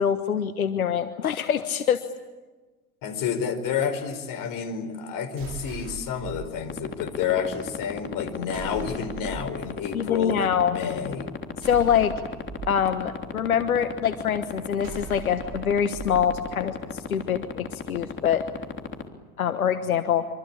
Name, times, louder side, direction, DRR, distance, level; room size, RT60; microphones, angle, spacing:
voice 1, 0.0-2.0 9.9-10.7 11.6-12.1 12.7-18.4 19.4-20.3, left 8 dB, 90° left, 10 dB, 1.4 m, -24 dB
voice 2, 3.0-11.3, left 7 dB, 50° left, 11 dB, 5.0 m, -29 dB
sound 1, 5.4-6.5 8.5-9.5 11.6-12.7 14.8-16.3, right 5 dB, 55° right, 4.8 m, -39 dB
sound 2, 6.7-19.0, left 6 dB, 30° left, 3.4 m, -31 dB
26.0 x 25.5 x 8.7 m, 1.2 s
hypercardioid pair, 85°, 41 cm